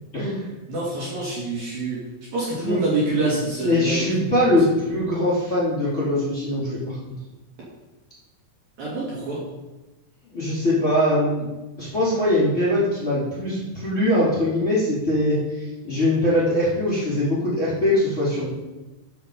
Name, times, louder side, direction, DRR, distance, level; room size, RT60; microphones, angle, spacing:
voice 1, 0.1-0.4 2.6-2.8 3.6-7.0 10.3-11.5 11.8-18.5, left 1 dB, 15° left, -9 dB, 3.9 m, -22 dB
voice 2, 0.7-2.0 2.3-4.1 4.4-4.5 8.8-9.4, right 2 dB, 50° right, -6 dB, 3.6 m, -26 dB
14.5 x 6.8 x 5.3 m, 1.1 s
omnidirectional pair, 5.9 m